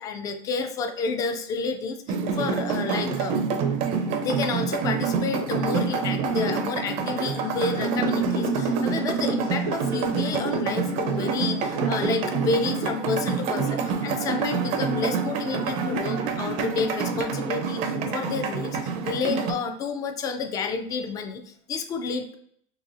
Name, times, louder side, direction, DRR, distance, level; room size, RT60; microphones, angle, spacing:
voice 1, 0.0-3.4 4.2-22.4, left 4 dB, 20° left, 7 dB, 0.3 m, -30 dB
sound 1, 2.1-19.5, right 5 dB, 45° right, 0.4 m, -27 dB
4.0 x 3.2 x 2.4 m, 0.68 s
cardioid pair, 170°, 16 cm